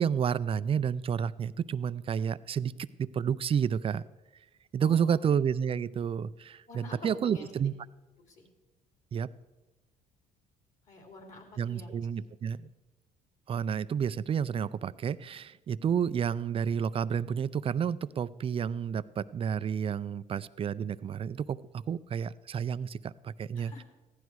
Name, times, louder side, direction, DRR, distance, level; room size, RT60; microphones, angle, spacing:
voice 1, 0.0-2.7 3.0-4.0 4.7-7.7 9.1-9.3 11.6-12.7 13.5-23.7, right 7 dB, 35° right, 16 dB, 0.4 m, -30 dB
voice 2, 4.8-5.3 6.7-7.5 8.3-8.5 10.8-11.9 23.5-23.8, left 3 dB, 50° left, 3 dB, 3.1 m, -48 dB
15.0 x 11.5 x 4.7 m, 1.1 s
cardioid pair, 110°, 17 cm